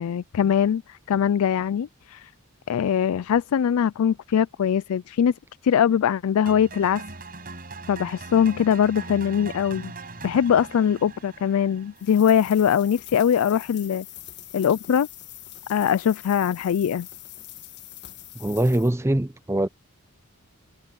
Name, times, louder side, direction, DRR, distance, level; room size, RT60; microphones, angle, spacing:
voice 1, 0.0-2.3 2.7-5.3 5.6-7.0 7.9-9.9 10.2-14.1 14.5-15.1 15.7-17.1, left 8 dB, 70° left, 0.3 m, -22 dB
sound 1, 6.5-12.6, right 3 dB, 40° right, 5.3 m, -41 dB
sound 2, 12.0-18.9, left 13 dB, 50° left, 1.7 m, -43 dB
voice 2, 18.4-19.7, right 1 dB, 10° right, 0.6 m, -23 dB
head